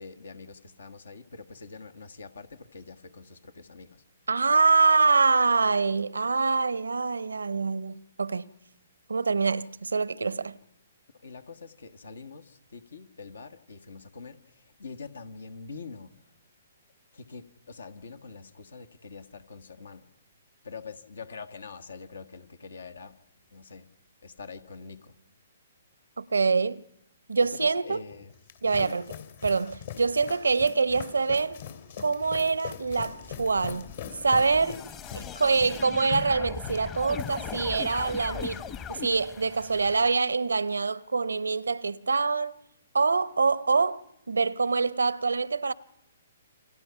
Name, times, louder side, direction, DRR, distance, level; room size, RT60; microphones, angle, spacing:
voice 1, 0.0-4.0 11.2-16.2 17.1-20.1 20.6-23.2 23.5-23.9 24.2-25.2 27.4-28.3 28.8-29.0, left 4 dB, 80° left, 1.6 m, -44 dB
voice 2, 4.3-8.5 9.1-10.6 26.2-26.8 27.3-28.0 28.6-29.0 29.4-31.6 32.0-33.9 34.2-34.9 35.1-38.6 38.9-42.5 42.9-44.0 44.3-45.7, right 4 dB, 90° right, 0.8 m, -25 dB
sound 1, 28.1-38.1 38.4-38.8, left 8 dB, 60° left, 2.9 m, -41 dB
Space Attack, 33.1-40.2, left 8 dB, 25° left, 1.0 m, -40 dB
29.0 x 25.5 x 5.8 m
hypercardioid pair, 135°, 0 cm